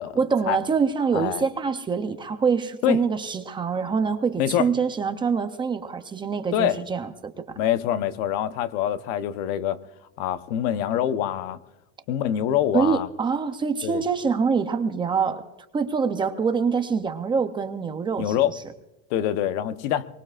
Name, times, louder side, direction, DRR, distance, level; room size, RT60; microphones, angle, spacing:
voice 1, 0.2-7.6 12.7-15.4 15.7-18.3, right 5 dB, 15° right, 7 dB, 0.6 m, -25 dB
voice 2, 1.1-1.4 2.8-3.0 4.4-4.7 6.5-6.8 7.6-9.8 10.2-11.6 12.1-13.1 13.8-14.0 18.2-18.5 19.1-20.1, left 11 dB, 70° left, 11 dB, 1.0 m, -25 dB
23.5 x 21.0 x 2.5 m, 0.99 s
cardioid pair, 175°, 32 cm